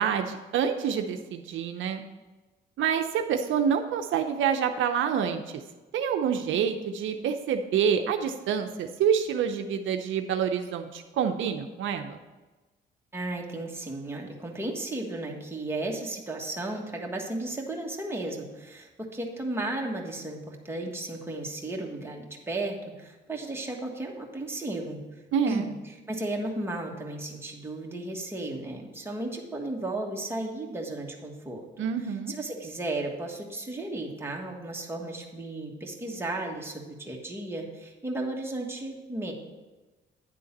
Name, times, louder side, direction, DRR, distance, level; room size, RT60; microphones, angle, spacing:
voice 1, 0.0-2.0 2.8-5.6 5.9-12.2 25.3-25.7 31.8-32.3, right 7 dB, 75° right, 6 dB, 0.7 m, -27 dB
voice 2, 13.1-25.0 25.5-31.9 32.3-39.3, right 2 dB, 10° right, 0 dB, 1.5 m, -34 dB
9.9 x 3.8 x 7.2 m, 1.2 s
cardioid pair, 90°, 20 cm